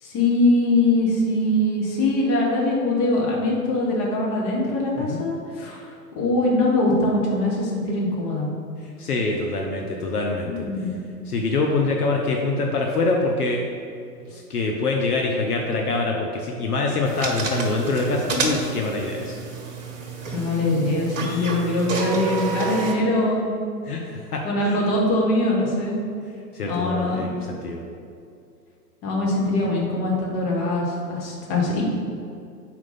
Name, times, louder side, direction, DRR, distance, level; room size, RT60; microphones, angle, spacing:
voice 1, 0.0-5.8 6.1-8.5 10.5-11.0 20.3-23.5 24.4-26.0 26.6-27.4 29.0-31.8, left 2 dB, 30° left, -3 dB, 1.4 m, -22 dB
voice 2, 9.0-10.7 11.3-13.6 14.3-19.4 23.9-24.8 26.5-27.8, left 3 dB, 70° left, 1 dB, 0.8 m, -25 dB
sound 1, 17.1-23.0, right 4 dB, 55° right, 1.1 m, -29 dB
4.3 x 4.3 x 5.6 m, 2.4 s
figure-of-eight pair, 105°, 48 cm